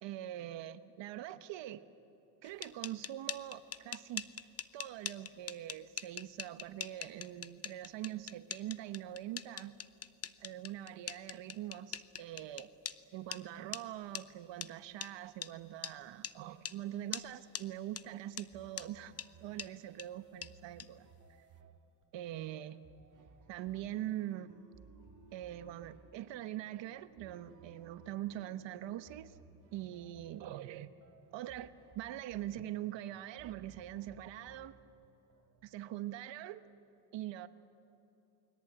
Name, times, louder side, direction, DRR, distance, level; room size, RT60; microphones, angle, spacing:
voice 1, 0.0-1.8 2.4-4.3 4.7-9.8 10.4-12.7 13.1-19.1 19.4-21.1 22.1-22.8 23.5-24.5 25.3-29.4 29.7-30.9 31.3-34.8 35.6-36.6 37.1-37.5, right 13 dB, 75° right, 11 dB, 1.3 m, -43 dB
sound 1, 2.4-13.0 13.3-13.4 13.7-13.8 14.1-14.2 14.6-14.7 15.0-15.1 15.4-15.5 15.8-15.9 16.2-16.3 16.6-16.8 17.1-17.3 17.5-17.6 18.0-18.1 18.4-18.5 18.8-18.9 19.2-19.3 19.6-19.7 20.0-20.1 20.4-20.5 20.8-20.9, left 8 dB, 35° left, 0.8 m, -41 dB
sound 2, 18.5-35.8, right 5 dB, 45° right, 2.3 m, -62 dB
sound 3, 23.6-30.3, right 4 dB, 90° left, 4.6 m, -64 dB
29.5 x 21.5 x 8.9 m, 2.9 s
cardioid pair, 115°, 44 cm